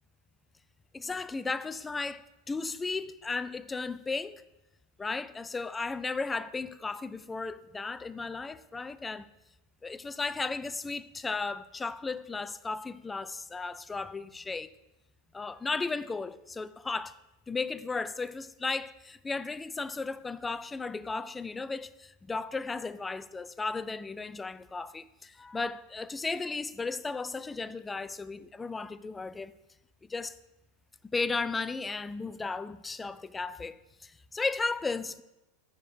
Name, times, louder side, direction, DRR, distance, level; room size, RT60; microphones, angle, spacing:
voice 1, 0.9-4.4 5.0-9.3 9.8-14.7 15.3-17.2 17.5-29.5 30.1-30.3 31.1-35.2, left 4 dB, 15° left, 0.4 m, -35 dB
6.5 x 4.8 x 6.9 m
hypercardioid pair, 90°, 0 cm